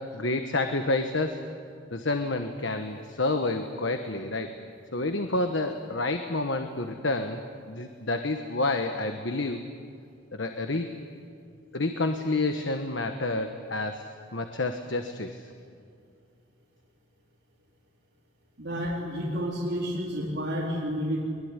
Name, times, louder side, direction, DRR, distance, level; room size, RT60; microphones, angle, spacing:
voice 1, 0.0-1.4 1.9-4.5 4.9-7.4 7.7-9.6 10.3-10.9 11.7-15.5, left 2 dB, 70° left, 6 dB, 1.3 m, -29 dB
voice 2, 18.6-21.2, equal, 60° right, -6 dB, 4.1 m, -30 dB
22.5 x 22.0 x 9.9 m, 2.3 s
head